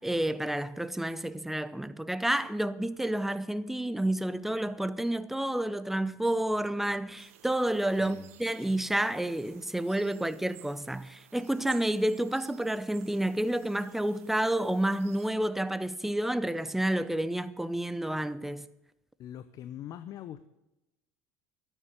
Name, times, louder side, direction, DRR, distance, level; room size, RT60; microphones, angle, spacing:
voice 1, 0.0-18.7, right 1 dB, 5° right, 0.8 m, -30 dB
sound 1, 7.2-15.3, right 12 dB, 90° right, 1.0 m, -55 dB
voice 2, 8.0-8.3 19.2-20.5, left 11 dB, 55° left, 0.7 m, -42 dB
13.0 x 9.4 x 8.1 m
supercardioid pair, 85°, 7 cm